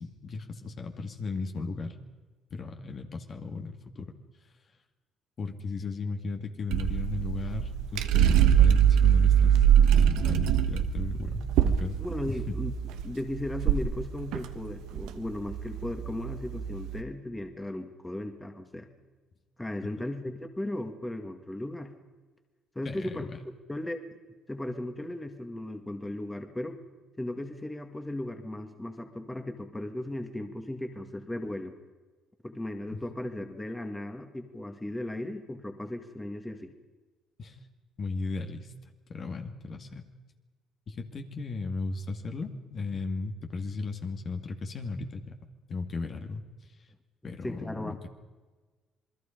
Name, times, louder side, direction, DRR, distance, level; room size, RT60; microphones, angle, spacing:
voice 1, 0.0-2.0 2.5-4.1 5.4-9.6 9.9-12.0 12.2-12.6 22.8-23.4 32.9-33.0 37.4-37.6 38.0-38.7 39.1-40.1 40.9-45.4 45.7-46.4 47.2-48.1, left 3 dB, 45° left, 5 dB, 2.3 m, -36 dB
sound 1, 6.7-17.0, right 9 dB, 80° right, 1.2 m, -24 dB
voice 2, 12.0-12.7 13.0-18.9 19.6-21.9 22.8-23.3 23.7-24.0 24.5-26.8 27.2-31.7 32.4-36.7 47.4-48.0, left 1 dB, 10° left, 6 dB, 2.1 m, -36 dB
27.5 x 20.5 x 5.2 m, 1.3 s
supercardioid pair, 80°, 0 cm